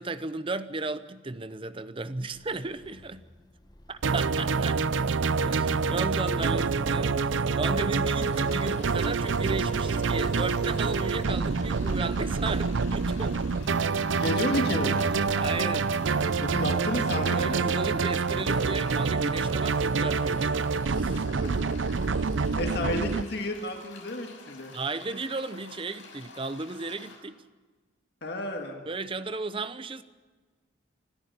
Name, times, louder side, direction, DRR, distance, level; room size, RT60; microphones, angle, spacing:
voice 1, 0.0-3.3 3.9-4.8 5.4-13.6 15.2-16.0 17.3-21.3 24.7-27.4 28.9-30.0, right 3 dB, 25° right, 0.8 m, -35 dB
sound 1, 2.3-17.0, left 1 dB, 20° left, 1.2 m, -47 dB
sound 2, 4.0-23.2, right 4 dB, 80° right, 0.6 m, -27 dB
sound 3, 8.2-27.2, left 4 dB, 80° left, 6.2 m, -49 dB
voice 2, 14.1-15.0 16.4-17.8 21.1-21.7 22.5-24.7 28.2-28.8, left 1 dB, 55° left, 2.0 m, -32 dB
25.0 x 13.0 x 9.7 m
head